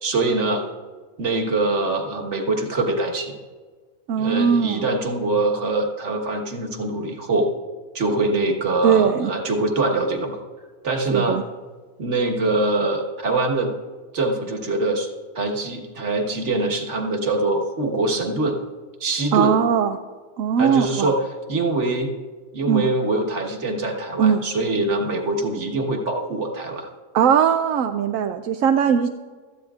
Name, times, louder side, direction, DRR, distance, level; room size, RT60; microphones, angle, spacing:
voice 1, 0.0-0.6 1.2-3.3 4.1-7.5 7.9-10.4 10.8-11.4 12.0-13.7 14.1-15.1 15.3-18.6 19.0-19.5 20.6-21.2 21.5-22.1 22.5-26.9, right 2 dB, 50° right, 2 dB, 1.6 m, -23 dB
voice 2, 4.1-4.8 8.8-9.3 11.1-11.4 19.3-20.0 20.4-21.1 22.6-22.9 24.2-24.4 27.1-29.1, right 7 dB, 70° right, 6 dB, 0.9 m, -19 dB
18.0 x 13.5 x 2.4 m, 1.4 s
omnidirectional pair, 1.6 m